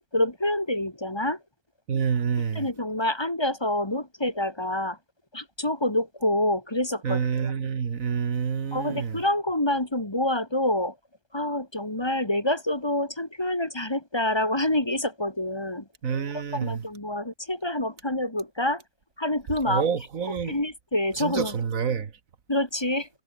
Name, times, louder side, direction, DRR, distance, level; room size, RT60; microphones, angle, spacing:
voice 1, 0.1-1.4 2.6-5.0 5.3-7.5 8.7-10.9 11.3-15.8 16.5-18.8 19.2-19.9 20.5-21.6 22.5-23.1, left 1 dB, 20° left, 2.2 m, -27 dB
voice 2, 1.9-2.7 7.0-9.2 16.0-16.8 19.7-20.6 21.2-22.1, right 6 dB, 85° right, 1.9 m, -27 dB
omnidirectional pair, 1.4 m